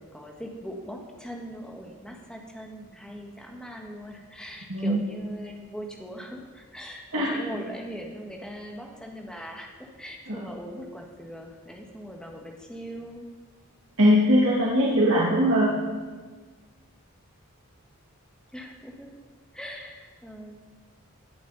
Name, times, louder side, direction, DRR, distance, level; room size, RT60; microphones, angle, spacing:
voice 1, 0.0-13.3 18.5-19.1 19.5-20.6, equal, 5° left, 0 dB, 1.6 m, -40 dB
voice 2, 4.7-5.0 7.1-7.3 10.3-10.5 14.0-15.7, equal, 70° right, -5 dB, 2.3 m, -21 dB
17.5 x 10.5 x 4.2 m, 1.4 s
head